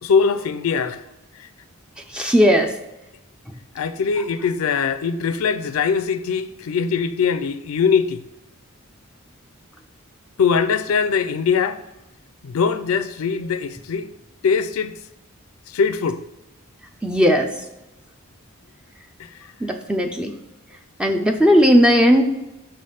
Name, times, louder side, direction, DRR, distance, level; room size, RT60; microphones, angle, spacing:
voice 1, 0.0-1.0 1.4-1.5 3.7-8.2 10.4-11.8 12.4-14.1 14.4-15.0 15.7-16.2 19.2-19.5, left 6 dB, 75° left, 0.4 m, -21 dB
voice 2, 2.1-2.7 17.0-17.5 19.6-20.3 21.0-22.2, equal, 5° right, 0.3 m, -16 dB
5.8 x 3.3 x 5.5 m
head